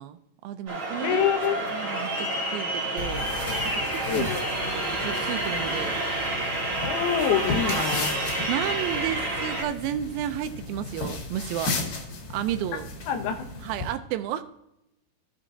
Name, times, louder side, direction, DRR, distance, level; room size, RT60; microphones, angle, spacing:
voice 1, 0.0-1.2 1.7-3.3 3.6-4.4 4.7-6.0 7.6-7.9 8.5-11.8 12.3-12.9 13.3-13.4 13.6-14.4, right 11 dB, 80° right, 11 dB, 2.2 m, -32 dB
sound 1, 0.7-9.6, right 1 dB, 40° right, 2.4 m, -29 dB
voice 2, 1.0-1.6 4.1-4.4 6.8-8.1 13.1-13.5, left 9 dB, 80° left, 5 dB, 2.7 m, -26 dB
sound 2, 3.0-13.9, left 3 dB, 65° left, 3.3 m, -35 dB
15.0 x 6.6 x 2.6 m, 0.82 s
omnidirectional pair, 4.4 m